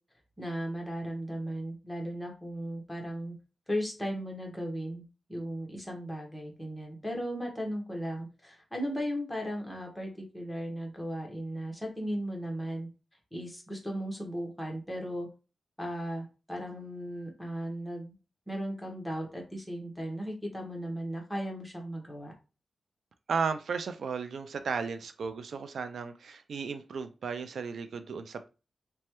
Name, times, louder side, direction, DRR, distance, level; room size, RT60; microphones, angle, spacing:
voice 1, 0.4-3.3 3.7-5.0 5.3-12.9 13.3-15.3 15.8-18.1 18.5-22.3, equal, 5° left, 1 dB, 1.1 m, -36 dB
voice 2, 23.3-28.5, right 5 dB, 80° right, 9 dB, 0.3 m, -34 dB
3.1 x 2.1 x 2.9 m, 0.31 s
wide cardioid pair, 100°, 0 cm